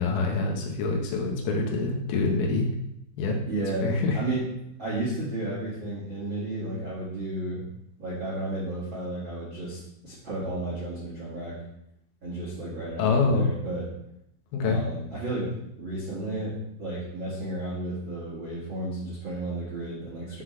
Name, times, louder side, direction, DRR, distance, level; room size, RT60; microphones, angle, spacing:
voice 1, 0.0-2.7 3.2-3.4 3.8-4.2 13.0-13.5 14.5-14.8, left 3 dB, 85° left, 0 dB, 3.7 m, -25 dB
voice 2, 3.4-4.4 4.8-7.6 8.0-11.5 12.2-13.9 14.6-16.5 16.8-20.4, right 2 dB, 65° right, -9 dB, 1.2 m, -33 dB
11.0 x 3.9 x 3.2 m, 0.78 s
omnidirectional pair, 5.6 m